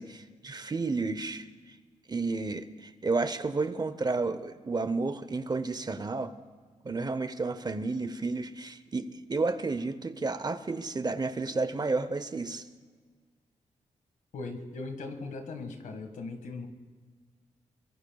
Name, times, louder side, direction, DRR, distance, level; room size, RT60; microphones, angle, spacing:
voice 1, 0.0-1.4 2.1-6.3 6.8-12.6, right 3 dB, 30° right, 12 dB, 0.8 m, -31 dB
voice 2, 14.3-16.7, left 3 dB, 85° left, 6 dB, 1.8 m, -39 dB
23.5 x 22.0 x 2.4 m, 1.5 s
cardioid pair, 75°, 13 cm